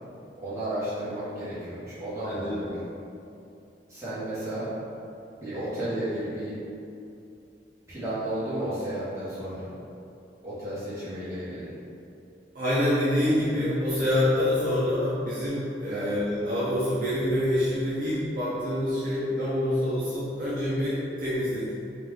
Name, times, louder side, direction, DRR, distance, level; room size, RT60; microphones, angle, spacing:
voice 1, 0.4-2.8 3.9-4.7 5.4-6.5 7.9-9.7 10.4-11.7 15.9-16.1, right 1 dB, 15° right, -13 dB, 1.5 m, -33 dB
voice 2, 2.2-2.7 12.5-21.8, left 1 dB, 50° right, -11 dB, 0.8 m, -26 dB
4.2 x 2.5 x 3.7 m, 2.6 s
head